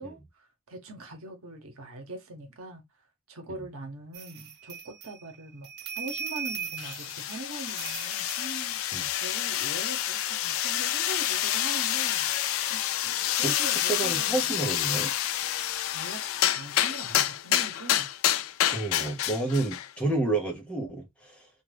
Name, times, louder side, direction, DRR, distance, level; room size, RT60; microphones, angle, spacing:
voice 1, 0.0-2.8 3.3-5.7 6.0-8.8 9.1-12.3 12.7-14.7 15.9-16.2 16.5-18.1 19.0-19.1, right 2 dB, 90° right, 0.8 m, -42 dB
sound 1, 4.1-9.3, right 7 dB, 50° right, 0.5 m, -39 dB
sound 2, 6.8-19.9, left 12 dB, 80° left, 0.3 m, -28 dB
voice 2, 13.4-15.1 18.7-21.5, right 2 dB, 5° left, 0.7 m, -30 dB
2.4 x 2.3 x 3.2 m
head